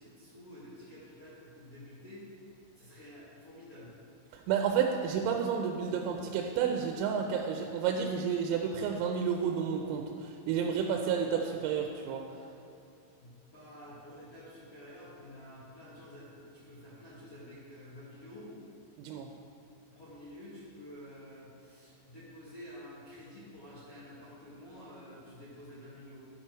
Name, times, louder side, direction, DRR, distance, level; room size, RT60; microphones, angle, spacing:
voice 1, 0.0-2.3 2.7-3.9 13.2-18.5 19.9-26.2, left 1 dB, 75° left, -12 dB, 1.3 m, -50 dB
voice 2, 4.3-12.4 19.0-19.3, right 7 dB, 90° right, 3 dB, 3.3 m, -31 dB
12.0 x 6.0 x 4.5 m, 2.6 s
omnidirectional pair, 6.0 m